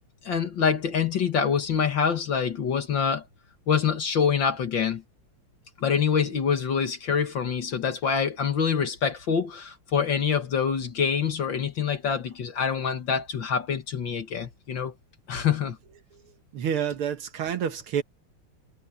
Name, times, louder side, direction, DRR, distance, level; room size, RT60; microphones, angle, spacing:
voice 1, 0.2-3.2 3.7-5.0 5.8-14.9 15.3-15.8, left 7 dB, 60° left, 2.1 m, -25 dB
voice 2, 16.5-18.0, right 8 dB, 75° right, 2.1 m, -28 dB
omnidirectional pair, 2.4 m